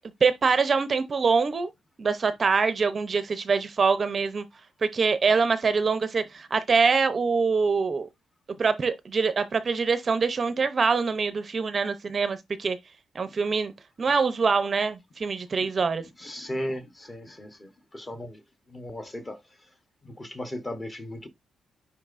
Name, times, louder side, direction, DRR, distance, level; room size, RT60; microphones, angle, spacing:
voice 1, 0.2-1.7 2.0-4.5 4.8-8.1 8.6-12.8 13.1-13.7 14.0-16.0, right 5 dB, 30° right, 0.6 m, -24 dB
voice 2, 16.2-17.7 17.9-18.4 18.7-19.4 20.0-21.3, left 1 dB, 20° left, 1.0 m, -36 dB
10.0 x 3.8 x 2.5 m
cardioid pair, 155°, 0 cm